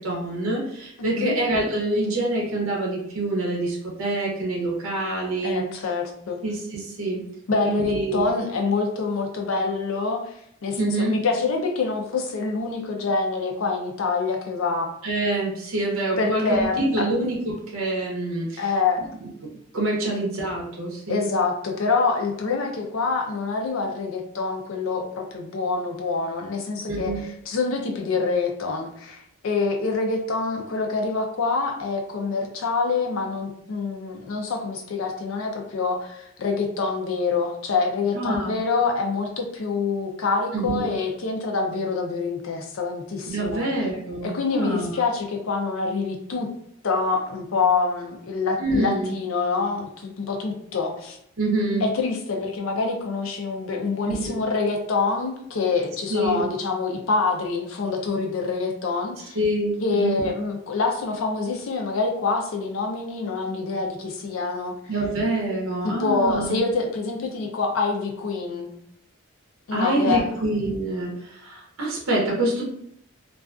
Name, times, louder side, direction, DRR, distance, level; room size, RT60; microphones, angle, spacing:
voice 1, 0.0-5.6 6.4-7.2 7.6-8.3 10.8-11.2 15.0-18.6 19.2-19.3 19.7-21.3 26.9-27.2 38.1-38.6 40.5-40.9 43.3-44.9 48.6-49.1 51.4-51.8 54.1-54.4 56.1-56.4 59.3-60.3 64.9-66.6 69.7-72.6, right 2 dB, 75° right, -2 dB, 0.7 m, -26 dB
voice 2, 5.4-6.4 7.5-10.3 10.6-14.9 16.2-17.2 18.6-19.0 20.0-20.1 21.1-43.7 44.2-46.5 46.8-51.2 51.8-59.4 59.8-64.7 65.8-68.7 69.7-70.4, left 4 dB, 70° left, 2 dB, 0.5 m, -26 dB
2.4 x 2.3 x 2.4 m, 0.72 s
head